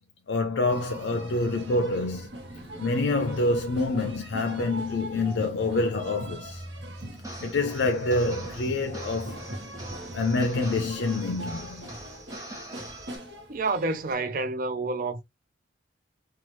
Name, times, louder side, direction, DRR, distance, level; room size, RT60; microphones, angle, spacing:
voice 1, 0.3-2.3 2.8-6.6 7.4-9.5 10.1-11.9, left 2 dB, 70° left, 0.4 m, -27 dB
sound 1, 0.7-14.1, right 1 dB, 70° right, 0.9 m, -40 dB
sound 2, 7.2-13.2, right 1 dB, 20° right, 0.8 m, -43 dB
voice 2, 13.5-15.2, right 3 dB, 45° right, 0.4 m, -28 dB
2.9 x 2.3 x 3.0 m
head